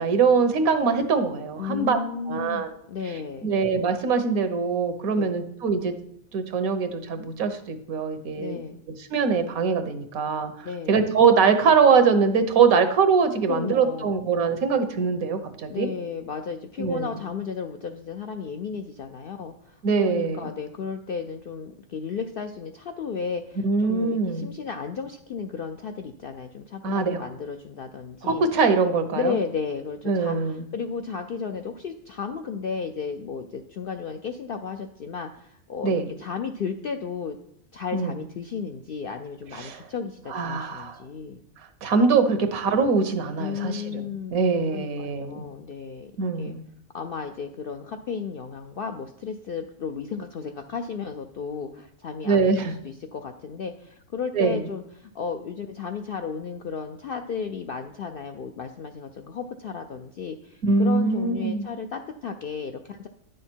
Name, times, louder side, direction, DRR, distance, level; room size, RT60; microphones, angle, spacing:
voice 1, 0.0-2.0 2.3-2.7 3.4-5.9 6.3-8.6 8.9-10.5 10.9-15.9 16.8-17.1 19.8-20.5 23.6-24.5 26.8-27.2 28.2-29.3 30.1-30.7 35.8-36.1 37.9-38.1 39.5-39.8 40.3-41.0 41.8-44.0 44.3-45.4 46.2-46.6 52.2-52.7 54.3-54.6 60.6-61.7, right 5 dB, 80° right, 8 dB, 1.4 m, -22 dB
voice 2, 1.6-3.5 5.1-5.4 8.3-8.8 10.6-11.0 13.5-14.1 15.7-28.4 29.1-37.4 37.7-41.4 43.4-46.1 46.4-46.5 46.9-63.1, left 6 dB, 70° left, 6 dB, 0.5 m, -34 dB
9.7 x 6.4 x 4.5 m, 0.71 s
omnidirectional pair, 1.5 m